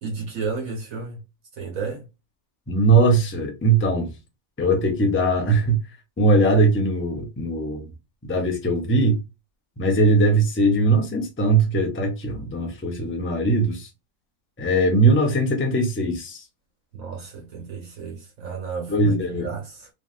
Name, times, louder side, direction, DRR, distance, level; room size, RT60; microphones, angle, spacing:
voice 1, 0.0-1.2 1.6-2.0 16.9-19.9, right 5 dB, 70° right, 1.6 m, -32 dB
voice 2, 2.7-4.1 4.6-5.8 6.2-7.9 8.3-9.2 9.8-13.9 14.6-16.4 18.9-19.5, right 2 dB, 15° left, 0.4 m, -20 dB
3.2 x 2.5 x 2.3 m
omnidirectional pair, 1.5 m